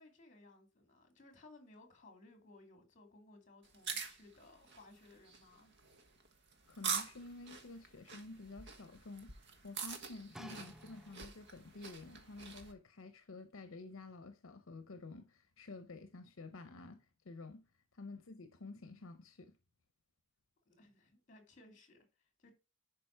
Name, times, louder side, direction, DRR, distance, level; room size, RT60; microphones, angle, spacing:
voice 1, 0.0-5.8 20.7-22.5, left 2 dB, 40° left, 2.7 m, -61 dB
sound 1, 3.6-12.7, right 6 dB, 60° right, 1.5 m, -45 dB
voice 2, 6.7-9.3 9.6-17.6 17.9-19.6, left 3 dB, 70° left, 0.8 m, -51 dB
sound 2, 10.3-11.6 12.4-12.5, right 1 dB, ahead, 0.4 m, -54 dB
11.0 x 5.2 x 4.6 m
head